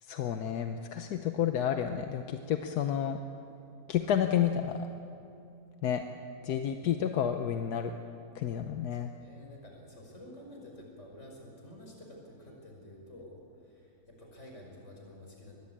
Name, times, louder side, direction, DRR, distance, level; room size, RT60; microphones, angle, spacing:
voice 1, 0.0-3.2 3.9-4.9 5.8-6.0 6.4-7.9 8.3-9.1, left 9 dB, 85° left, 6 dB, 1.4 m, -30 dB
voice 2, 9.0-15.5, left 1 dB, 50° left, 0 dB, 5.9 m, -50 dB
24.0 x 20.5 x 8.7 m, 2.7 s
omnidirectional pair, 1.6 m